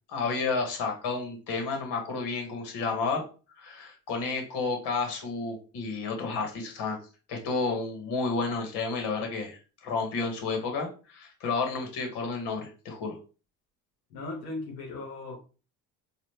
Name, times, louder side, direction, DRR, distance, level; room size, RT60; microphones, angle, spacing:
voice 1, 0.1-3.2 3.6-7.0 7.3-13.2, left 4 dB, 65° left, 1.4 m, -31 dB
voice 2, 14.1-15.4, left 2 dB, 85° left, 1.1 m, -37 dB
4.1 x 2.5 x 3.2 m
hypercardioid pair, 60°, 43 cm